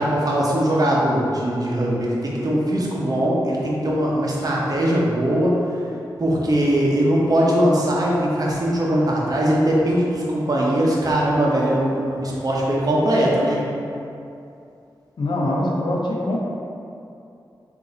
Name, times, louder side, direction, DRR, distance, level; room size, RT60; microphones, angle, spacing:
voice 1, 0.0-5.5 6.2-13.6, right 1 dB, 50° right, -4 dB, 0.9 m, -20 dB
voice 2, 15.2-16.4, left 1 dB, 70° left, -3 dB, 0.7 m, -23 dB
3.7 x 2.7 x 3.9 m, 2.6 s
cardioid pair, 50°, 8 cm